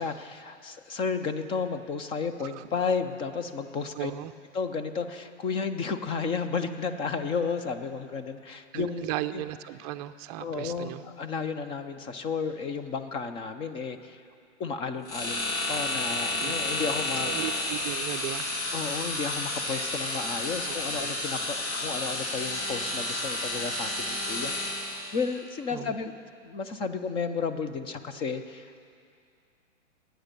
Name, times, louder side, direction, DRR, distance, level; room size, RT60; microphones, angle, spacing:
voice 1, 0.0-4.1 4.5-9.4 10.4-14.2 14.6-17.3 18.7-26.1 26.4-28.8, left 5 dB, 15° left, 9 dB, 0.4 m, -33 dB
voice 2, 4.0-4.3 8.7-11.0 16.4-16.6 17.1-18.5 20.7-21.1 25.7-26.0, right 14 dB, 30° right, 10 dB, 0.6 m, -36 dB
sound 1, 15.0-25.2, left 2 dB, 60° left, 3.2 m, -31 dB
22.0 x 9.1 x 6.7 m, 2.4 s
hypercardioid pair, 135°, 38 cm